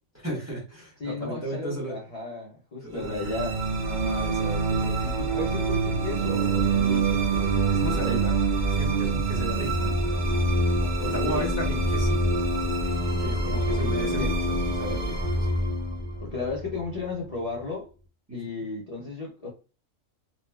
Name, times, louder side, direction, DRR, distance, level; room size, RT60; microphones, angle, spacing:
voice 1, 0.1-2.0 2.8-3.3 3.8-5.2 7.5-8.3 8.7-9.9 11.0-12.4 13.2-15.5 18.3-18.4, right 1 dB, 15° right, 0.9 m, -35 dB
voice 2, 1.0-3.6 5.0-7.7 8.1-8.2 10.8-11.5 13.4-14.3 16.2-17.9 18.3-19.5, left 3 dB, 40° left, 0.5 m, -35 dB
sound 1, 3.0-17.3, right 2 dB, 50° right, 0.5 m, -26 dB
2.9 x 2.3 x 2.2 m
omnidirectional pair, 1.4 m